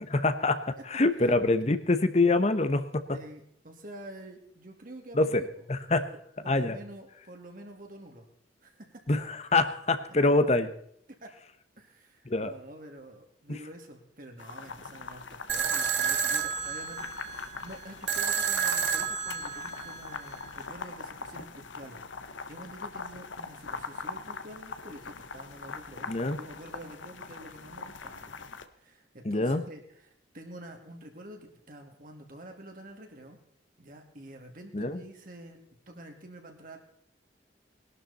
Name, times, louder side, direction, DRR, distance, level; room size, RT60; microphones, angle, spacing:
voice 1, 0.1-3.2 5.1-5.4 5.7-6.1 6.5-6.8 9.1-10.7 12.3-12.5 13.5-13.6 26.1-26.4 29.2-29.6 34.7-35.0, left 2 dB, 35° left, 11 dB, 0.9 m, -25 dB
voice 2, 3.1-5.5 6.1-6.2 6.4-8.3 8.6-9.0 11.2-11.3 11.8-33.4 33.8-35.6 35.9-36.8, right 1 dB, 45° right, 3 dB, 2.3 m, -48 dB
sound 1, 14.4-28.6, left 4 dB, 85° left, 1.1 m, -42 dB
sound 2, 15.5-20.5, right 7 dB, 70° right, 1.4 m, -30 dB
20.0 x 12.0 x 4.1 m, 0.68 s
head